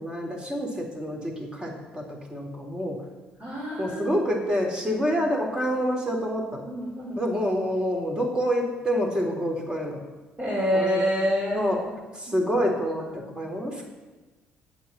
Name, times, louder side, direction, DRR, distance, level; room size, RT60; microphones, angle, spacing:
voice 1, 0.0-3.0 3.8-6.7 7.2-10.0 10.7-11.0 11.5-11.8 12.1-13.9, equal, 20° right, 0 dB, 3.8 m, -27 dB
voice 2, 3.4-4.1 4.8-5.0 6.6-7.2 10.4-11.9 12.3-12.4 13.1-13.4, equal, 35° right, -7 dB, 4.5 m, -28 dB
8.4 x 8.0 x 8.9 m, 1.2 s
supercardioid pair, 60°, 4 cm